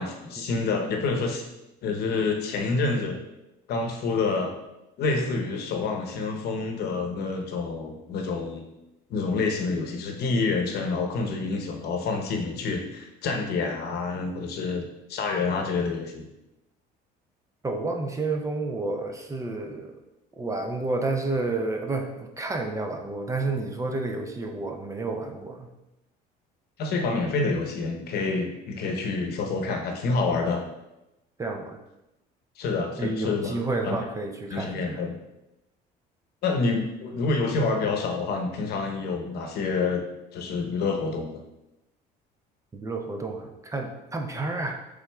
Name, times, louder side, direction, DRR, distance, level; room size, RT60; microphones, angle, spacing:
voice 1, 0.0-1.4 1.8-3.2 3.7-4.5 5.0-8.6 9.1-16.3 26.8-30.6 32.6-33.5 33.8-34.0 34.5-35.2 36.4-40.0 40.3-41.4, left 3 dB, 60° left, 3 dB, 0.8 m, -27 dB
voice 2, 17.6-19.9 20.4-25.7 31.4-31.8 33.0-34.8 42.7-44.7, right 3 dB, 15° right, 3 dB, 0.4 m, -30 dB
5.9 x 3.7 x 2.3 m, 0.93 s
cardioid pair, 115°, 19 cm